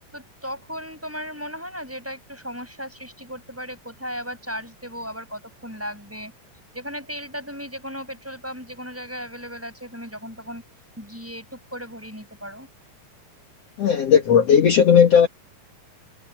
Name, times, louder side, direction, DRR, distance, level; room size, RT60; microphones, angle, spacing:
voice 1, 0.1-6.3 6.7-10.6 11.0-12.7, equal, 5° right, 7.4 m, -36 dB
voice 2, 13.8-15.3, left 7 dB, 55° left, 2.4 m, -15 dB
omnidirectional pair, 4.0 m